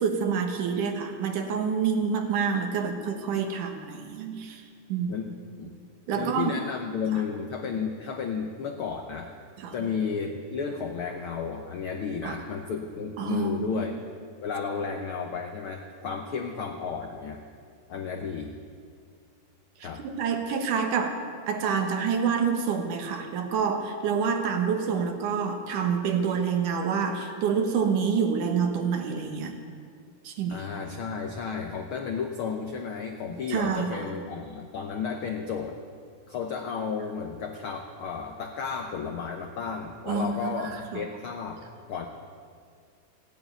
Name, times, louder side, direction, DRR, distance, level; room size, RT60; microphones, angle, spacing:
voice 1, 0.0-4.6 4.9-5.1 6.1-6.5 9.6-9.9 12.2-12.4 13.2-13.9 19.8-29.5 30.2-30.7 33.5-34.0 40.1-41.0, right 6 dB, 75° right, 5 dB, 2.8 m, -27 dB
voice 2, 5.1-5.7 6.1-9.3 9.7-14.0 14.4-17.4 17.9-18.5 19.8-20.0 30.5-35.8 36.3-41.6 41.9-42.1, left 6 dB, 85° left, 4 dB, 1.1 m, -33 dB
16.0 x 9.7 x 9.1 m, 2.1 s
omnidirectional pair, 3.8 m